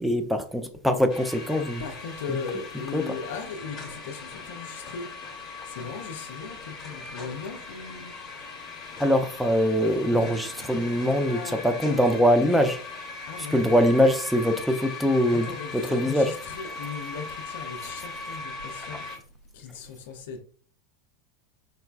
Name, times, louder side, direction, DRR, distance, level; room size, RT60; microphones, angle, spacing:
voice 1, 0.0-1.8 2.3-2.4 2.9-3.0 9.0-12.8 13.4-16.3, equal, ahead, 0.4 m, -23 dB
sound 1, 1.1-19.2, left 4 dB, 30° left, 1.0 m, -39 dB
voice 2, 1.8-5.1 5.7-8.2 10.1-10.3 11.2-12.1 13.3-13.6 15.3-19.1 19.5-20.4, left 5 dB, 60° left, 0.4 m, -38 dB
3.9 x 2.2 x 2.2 m
figure-of-eight pair, 85°, 0 cm